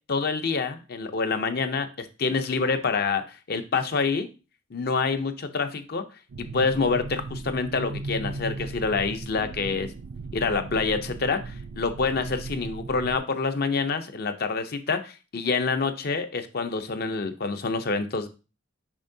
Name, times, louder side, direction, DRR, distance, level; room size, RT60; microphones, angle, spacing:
voice 1, 0.1-4.3 4.7-6.0 6.5-9.9 10.3-18.3, left 4 dB, 55° left, 8 dB, 0.6 m, -27 dB
sound 1, 6.3-13.2, right 3 dB, 65° right, 0.4 m, -37 dB
7.1 x 5.3 x 2.7 m, 0.32 s
head